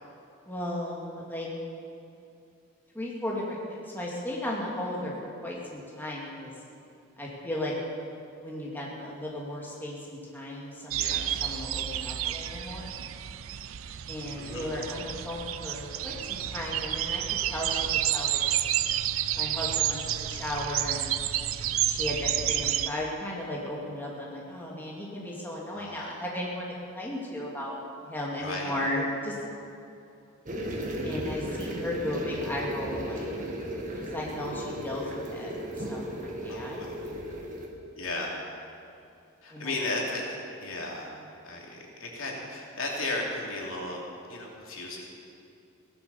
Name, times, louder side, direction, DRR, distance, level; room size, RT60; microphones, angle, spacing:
voice 1, 0.5-1.5 2.9-6.5 7.2-7.7 8.4-12.9 14.1-17.2 17.5-18.6 19.3-21.1 21.8-27.8 28.0-29.3 31.0-33.3 34.0-35.5 35.9-36.8 39.5-39.8, left 1 dB, 10° left, -4 dB, 2.3 m, -35 dB
sound 1, 10.9-22.9, right 11 dB, 80° right, 0.6 m, -30 dB
voice 2, 11.0-11.3 14.4-14.7 25.7-26.2 28.4-28.8 36.5-36.9 38.0-38.3 39.4-40.3 40.6-41.1 41.4-44.0 44.3-45.0, left 2 dB, 75° left, -2 dB, 3.0 m, -35 dB
sound 2, 30.5-37.7, equal, 40° right, 1.9 m, -35 dB
16.5 x 11.5 x 7.0 m, 2.6 s
head